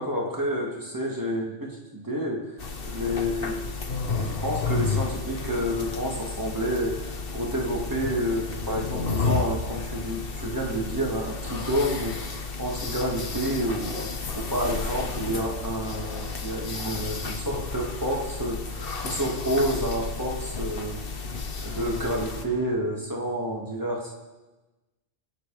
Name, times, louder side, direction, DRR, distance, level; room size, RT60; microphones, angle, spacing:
voice 1, 0.0-2.5 2.9-3.6 3.9-13.9 14.4-18.7 19.0-21.0 21.6-24.1, equal, 15° right, -2 dB, 2.7 m, -29 dB
sound 1, 2.6-22.4, left 4 dB, 55° left, 1.4 m, -32 dB
24.0 x 8.5 x 5.2 m, 1.1 s
omnidirectional pair, 1.2 m